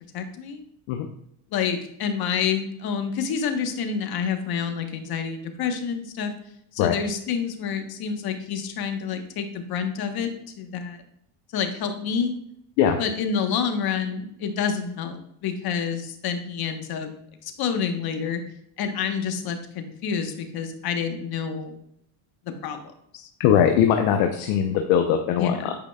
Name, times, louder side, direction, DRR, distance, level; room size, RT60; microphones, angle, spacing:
voice 1, 0.1-0.6 1.5-6.3 6.7-10.3 10.6-11.0 11.5-12.3 13.0-17.1 17.4-18.4 18.8-21.7 22.6-22.8 23.1-23.3 25.4-25.7, left 6 dB, 55° left, 6 dB, 1.1 m, -28 dB
voice 2, 23.4-25.8, left 9 dB, 85° left, 4 dB, 0.8 m, -21 dB
8.7 x 5.1 x 2.3 m, 0.74 s
supercardioid pair, 100°, 45 cm